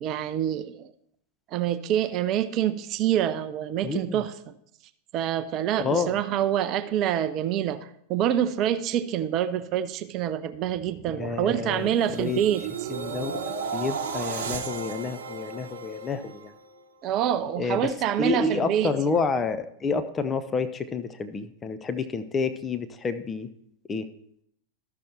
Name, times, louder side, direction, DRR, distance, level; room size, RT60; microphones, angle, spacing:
voice 1, 0.0-0.9 1.5-4.5 5.1-12.9 17.0-18.9, right 10 dB, 35° right, 12 dB, 0.5 m, -26 dB
voice 2, 3.8-4.2 5.8-6.2 11.1-12.4 12.9-16.5 17.6-17.9 18.2-23.5 23.9-24.1, left 4 dB, 20° left, 10 dB, 0.6 m, -29 dB
sound 1, 10.5-16.8 17.2-17.5, right 5 dB, 55° right, 1.0 m, -35 dB
13.0 x 6.5 x 4.2 m, 0.70 s
figure-of-eight pair, 90°, 0 cm